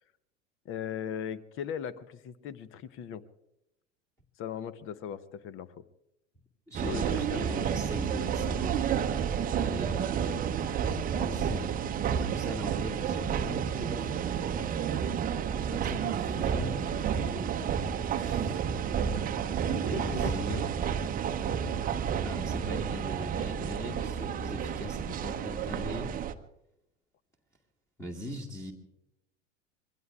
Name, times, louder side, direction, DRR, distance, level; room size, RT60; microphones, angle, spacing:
voice 1, 0.6-3.2 4.4-5.7 6.8-8.1 19.6-20.6, left 8 dB, 35° left, 17 dB, 0.9 m, -39 dB
voice 2, 6.7-8.8 9.6-10.4 11.2-11.8 12.2-14.1 15.7-16.9 18.2-18.6 20.0-20.6 22.2-26.1 28.0-28.7, equal, 10° left, 1 dB, 1.9 m, -40 dB
sound 1, 6.7-26.3, right 8 dB, 20° right, 0.8 m, -31 dB
26.0 x 22.5 x 2.4 m, 0.89 s
figure-of-eight pair, 80°, 37 cm